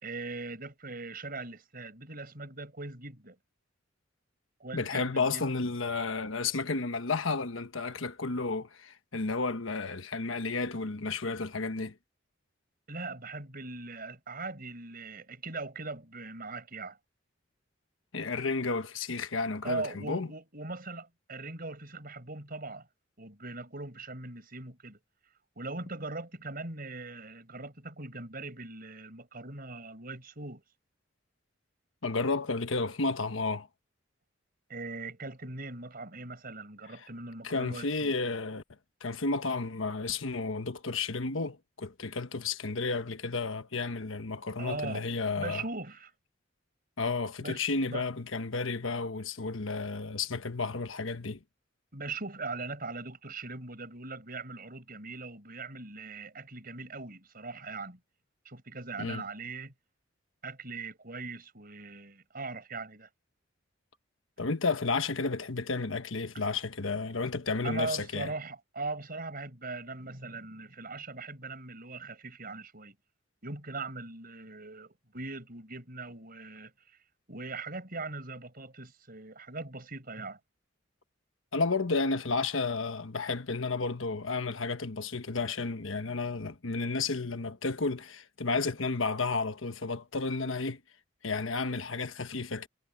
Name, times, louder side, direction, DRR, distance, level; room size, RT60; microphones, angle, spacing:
voice 1, 0.0-3.4 4.6-5.4 12.9-17.0 19.6-22.9 23.2-25.0 25.6-30.6 34.7-38.2 44.6-45.1 45.4-46.1 47.4-48.0 51.9-58.0 58.5-59.7 60.4-63.1 67.6-72.9 73.4-76.7 77.3-80.4, right 3 dB, 50° right, 5.5 m, -40 dB
voice 2, 4.7-11.9 18.1-20.3 32.0-33.7 37.4-38.6 39.0-45.6 47.0-51.4 59.0-59.2 64.4-68.3 81.5-90.8 91.2-92.7, left 3 dB, 85° left, 1.3 m, -32 dB
head